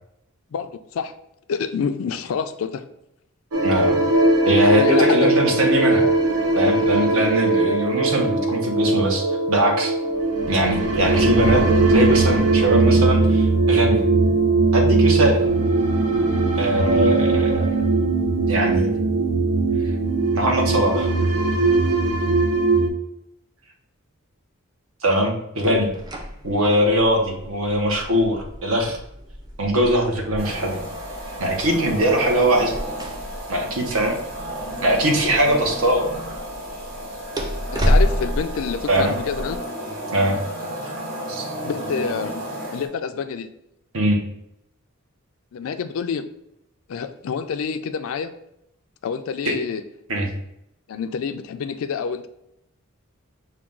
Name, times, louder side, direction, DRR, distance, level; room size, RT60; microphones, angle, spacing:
voice 1, 0.5-1.1 1.5-2.8 4.7-5.3 25.6-25.8 37.7-39.6 41.6-42.3 42.7-43.5 45.5-46.3 46.9-48.3 49.0-49.8 50.9-52.3, left 6 dB, 65° left, 9 dB, 0.3 m, -27 dB
sound 1, 3.5-22.9, right 3 dB, 90° right, 0.6 m, -19 dB
voice 2, 3.6-4.0 4.4-6.1 6.6-9.9 10.5-11.6 11.9-14.0 14.7-15.4 16.6-17.8 18.5-18.9 20.3-21.1 25.0-25.9 26.4-29.0 29.6-30.8 31.4-32.7 33.5-34.2 34.8-36.1 38.9-39.1 40.1-40.4 41.3-41.5 43.9-44.2 49.4-49.5 50.1-50.3, right 1 dB, 70° right, 2 dB, 0.9 m, -21 dB
sound 2, 25.6-39.6, equal, 20° right, 0.6 m, -30 dB
sound 3, 30.4-42.9, right 1 dB, 45° right, 1.2 m, -32 dB
5.7 x 2.3 x 3.6 m, 0.81 s
head